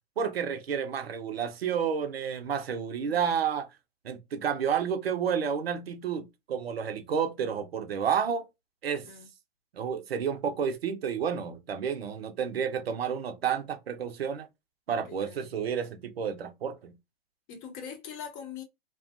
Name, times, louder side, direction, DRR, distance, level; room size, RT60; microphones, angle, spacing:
voice 1, 0.2-3.7 4.0-8.4 8.8-9.0 9.7-14.5 14.9-16.9, right 7 dB, 70° right, 0.6 m, -30 dB
voice 2, 3.0-3.4 9.0-9.3 15.1-15.5 17.5-18.6, left 7 dB, 30° left, 0.6 m, -43 dB
2.4 x 2.2 x 2.4 m
figure-of-eight pair, 110°, 32 cm